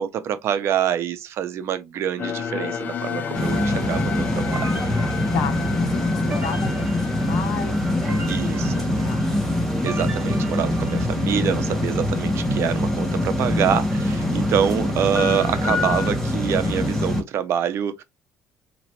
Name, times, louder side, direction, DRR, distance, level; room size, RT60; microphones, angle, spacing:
voice 1, 0.0-4.8 8.3-8.9 9.8-18.0, right 9 dB, 60° right, 0.7 m, -26 dB
sound 1, 2.2-9.4, left 7 dB, 40° left, 0.7 m, -33 dB
voice 2, 3.2-4.2 5.3-9.2 14.1-14.4, left 8 dB, 70° left, 0.9 m, -34 dB
sound 2, 3.3-17.2, left 1 dB, 5° left, 1.4 m, -23 dB
sound 3, 4.5-11.5, right 2 dB, 30° right, 1.3 m, -39 dB
4.0 x 3.0 x 3.0 m
cardioid pair, 130°, 5 cm